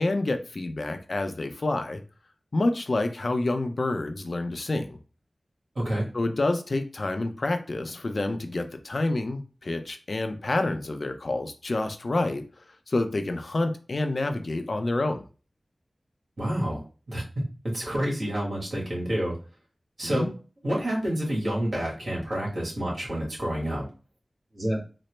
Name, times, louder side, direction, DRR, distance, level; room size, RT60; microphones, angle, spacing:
voice 1, 0.0-2.0 2.5-5.0 6.1-12.4 12.9-15.2 20.0-20.3, left 2 dB, 60° left, 7 dB, 0.4 m, -28 dB
voice 2, 5.7-6.1 16.4-19.3 20.0-20.3 20.6-23.9 24.5-24.8, equal, 70° right, -3 dB, 1.6 m, -28 dB
4.1 x 2.0 x 3.1 m, 0.35 s
wide cardioid pair, 70°, 0 cm